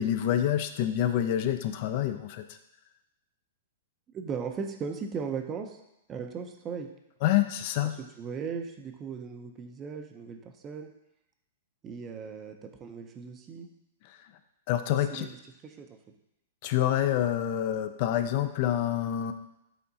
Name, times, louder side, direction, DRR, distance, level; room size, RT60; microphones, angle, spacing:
voice 1, 0.0-2.5 7.2-7.9 14.7-15.3 16.6-19.3, left 11 dB, 50° left, 9 dB, 0.3 m, -27 dB
voice 2, 4.1-5.8 6.1-6.9 7.8-10.9 11.8-13.7 15.1-15.4 15.6-16.0, right 6 dB, 25° right, 5 dB, 0.4 m, -37 dB
5.5 x 3.5 x 2.7 m, 0.85 s
hypercardioid pair, 140°, 0 cm